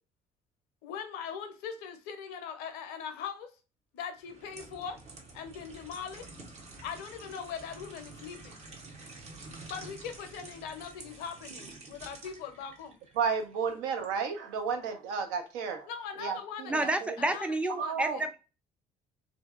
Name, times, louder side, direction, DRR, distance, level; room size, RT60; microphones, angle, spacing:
voice 1, 0.8-3.5 3.9-5.0 5.3-6.3 6.8-8.6 9.7-12.9 15.9-18.3, left 7 dB, 65° left, 0.6 m, -41 dB
sound 1, 4.2-14.1 14.6-14.8, right 3 dB, 40° right, 0.8 m, -49 dB
voice 2, 13.2-15.9 16.2-17.2 17.8-18.2, right 6 dB, 70° right, 0.6 m, -32 dB
voice 3, 16.7-18.4, right 1 dB, 5° right, 0.5 m, -30 dB
2.6 x 2.4 x 2.3 m
hypercardioid pair, 55°, 18 cm